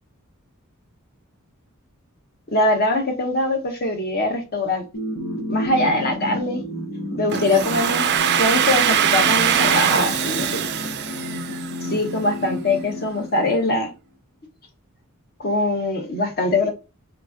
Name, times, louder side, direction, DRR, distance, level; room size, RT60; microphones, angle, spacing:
voice 1, 2.5-4.8 5.5-6.6 7.2-8.1 8.4-10.6 11.8-13.9 15.4-16.7, left 2 dB, 45° left, 1.0 m, -22 dB
sound 1, 4.9-13.9, left 1 dB, 70° left, 1.0 m, -31 dB
Domestic sounds home sounds, 7.3-12.1, right 8 dB, 50° right, 0.4 m, -21 dB
3.6 x 2.9 x 2.3 m
head